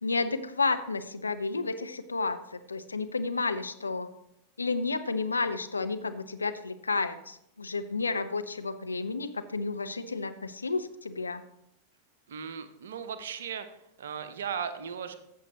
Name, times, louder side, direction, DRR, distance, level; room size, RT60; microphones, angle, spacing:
voice 1, 0.0-4.1 4.6-11.4, left 3 dB, 80° left, 10 dB, 0.6 m, -31 dB
voice 2, 12.3-15.2, right 7 dB, 60° right, 10 dB, 0.8 m, -37 dB
13.5 x 7.4 x 2.9 m, 0.79 s
figure-of-eight pair, 90°, 0 cm